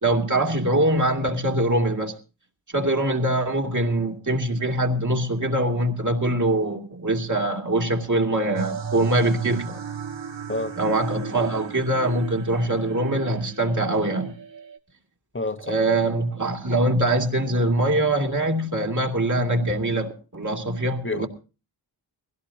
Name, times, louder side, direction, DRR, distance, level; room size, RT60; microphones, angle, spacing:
voice 1, 0.0-2.1 2.7-9.8 10.8-14.3 15.7-21.3, right 1 dB, 40° right, 2.4 m, -23 dB
sound 1, 8.5-14.8, right 6 dB, 85° right, 1.6 m, -36 dB
voice 2, 15.3-15.8 21.0-21.3, left 2 dB, 25° left, 1.2 m, -28 dB
21.5 x 16.5 x 2.8 m
wide cardioid pair, 65°, 45 cm